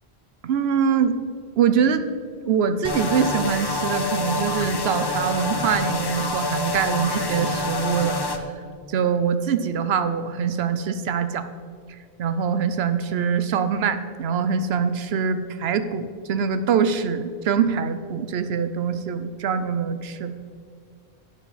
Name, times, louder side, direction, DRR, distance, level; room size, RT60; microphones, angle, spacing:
voice 1, 0.4-1.2 1.6-2.1 2.4-8.2 8.9-11.5 12.2-20.3, right 6 dB, 70° right, 11 dB, 0.9 m, -23 dB
sound 1, 2.8-8.4, left 2 dB, 30° left, 0.5 m, -27 dB
11.5 x 9.9 x 4.1 m, 2.1 s
omnidirectional pair, 1.1 m